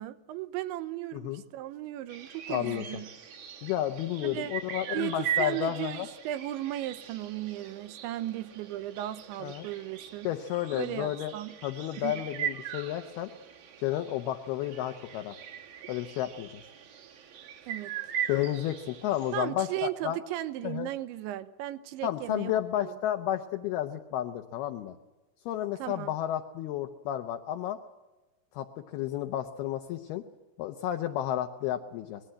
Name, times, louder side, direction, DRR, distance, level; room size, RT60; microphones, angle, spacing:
voice 1, 0.0-3.1 4.2-4.6 4.9-10.3 10.7-11.6 12.0-12.2 17.7-17.9 19.3-23.0 25.8-26.1, right 14 dB, 80° right, 12 dB, 3.2 m, -36 dB
sound 1, 2.1-19.4, right 9 dB, 55° right, 3.8 m, -40 dB
voice 2, 2.5-2.9 3.6-6.1 9.4-9.7 10.2-11.3 11.6-13.3 13.8-15.4 15.9-16.6 18.3-20.2 20.6-20.9 22.0-25.0 25.5-27.8 28.5-30.2 30.6-32.2, left 12 dB, 75° left, 4 dB, 2.4 m, -32 dB
24.5 x 20.0 x 7.8 m, 1.2 s
omnidirectional pair, 5.4 m